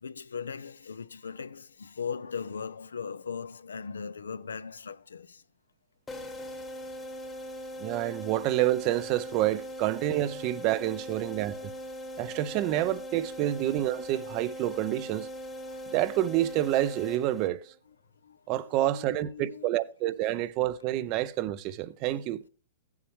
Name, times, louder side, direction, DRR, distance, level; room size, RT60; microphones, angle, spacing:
voice 1, 0.0-5.4 10.8-11.0 15.7-15.8 18.2-18.4 18.8-19.7, left 6 dB, 90° left, 0.5 m, -39 dB
sound 1, 6.1-17.8, equal, 15° left, 1.0 m, -40 dB
voice 2, 7.8-11.7 12.2-15.3 15.9-17.7 18.5-22.4, right 14 dB, 40° right, 0.5 m, -28 dB
15.0 x 7.1 x 3.1 m
hypercardioid pair, 120°, 0 cm